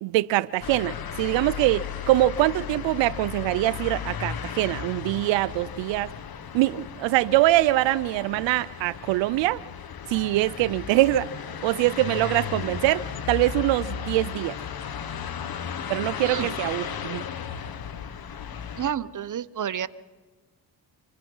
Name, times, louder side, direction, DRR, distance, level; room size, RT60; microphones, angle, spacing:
voice 1, 0.0-6.1 6.5-9.6 10.1-11.3 11.6-14.5 15.9-17.2, right 16 dB, 90° right, 0.6 m, -23 dB
sound 1, 0.6-18.9, left 8 dB, 55° left, 1.6 m, -35 dB
voice 2, 16.2-16.5 18.8-19.9, right 9 dB, 45° right, 1.0 m, -30 dB
26.5 x 24.5 x 5.5 m
supercardioid pair, 65°, 43 cm